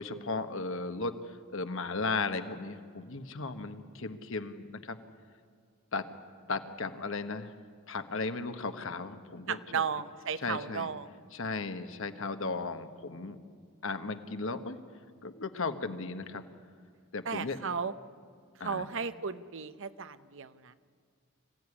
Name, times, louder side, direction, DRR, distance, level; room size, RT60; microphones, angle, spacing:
voice 1, 0.0-5.0 5.9-6.1 6.5-7.5 7.9-9.8 10.4-10.9 11.3-13.4 13.8-14.8 15.2-16.4 17.1-17.6 18.6-18.8, left 3 dB, 65° left, 8 dB, 1.4 m, -36 dB
voice 2, 9.5-11.1 17.2-17.9 18.6-20.7, right 6 dB, 65° right, 12 dB, 0.9 m, -35 dB
25.0 x 16.0 x 9.9 m, 2.1 s
head